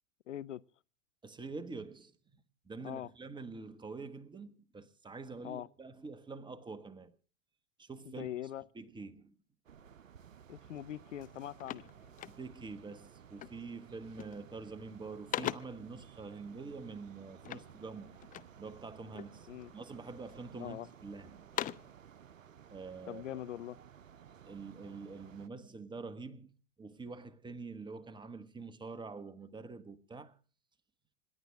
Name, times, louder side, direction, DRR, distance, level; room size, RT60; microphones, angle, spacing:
voice 1, 0.3-0.6 2.8-3.1 5.4-5.7 8.1-8.6 10.5-11.8 19.5-19.7 20.5-20.9 23.1-23.8, left 12 dB, 70° left, 0.7 m, -42 dB
voice 2, 1.2-7.2 7.8-8.3 8.7-9.4 12.3-18.1 18.6-21.5 22.7-23.2 24.4-26.5 26.8-30.4, right 4 dB, 10° right, 1.3 m, -46 dB
sound 1, 9.7-25.5, right 8 dB, 85° right, 0.7 m, -56 dB
sound 2, 10.8-10.9 11.2-12.8 13.4-13.7 14.0-14.5 14.9-15.9 17.4-18.6 19.1-19.8 20.3-21.0 21.3-22.0, left 12 dB, 20° left, 0.6 m, -42 dB
27.0 x 11.0 x 3.6 m
figure-of-eight pair, 95°, 38 cm